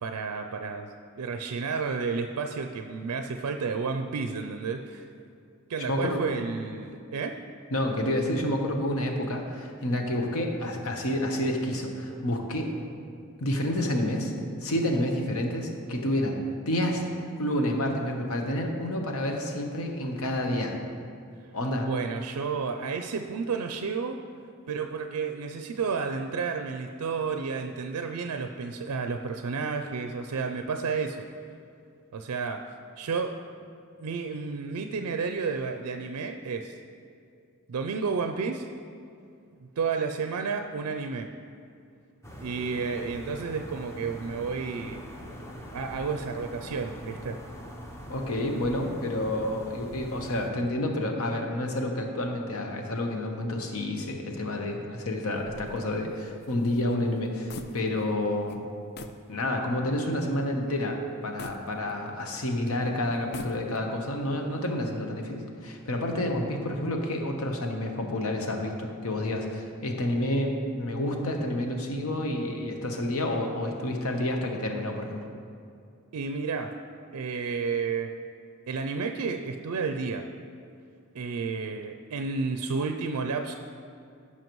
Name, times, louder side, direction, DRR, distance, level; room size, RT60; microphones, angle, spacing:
voice 1, 0.0-5.1 5.7-7.4 21.8-24.2 24.7-31.3 32.1-32.6 33.0-33.4 34.0-36.8 37.7-38.7 39.6-41.3 42.4-45.0 45.7-47.4 71.2-71.4 76.1-76.7 77.1-78.1 78.7-80.3 81.1-83.5, right 5 dB, 80° right, 6 dB, 0.4 m, -31 dB
voice 2, 5.9-6.2 7.7-12.7 13.4-14.3 14.6-16.4 16.7-17.0 17.4-20.8 21.5-21.9 48.1-58.6 59.3-75.2, left 1 dB, 70° left, 2 dB, 1.0 m, -29 dB
sound 1, 42.2-50.5, equal, 10° left, 0.7 m, -42 dB
sound 2, 55.4-58.2 58.5-58.6 59.0-59.3 59.8-59.9 61.4-62.4 63.1-64.0, left 3 dB, 45° left, 0.4 m, -44 dB
14.5 x 5.7 x 3.1 m, 2.4 s
head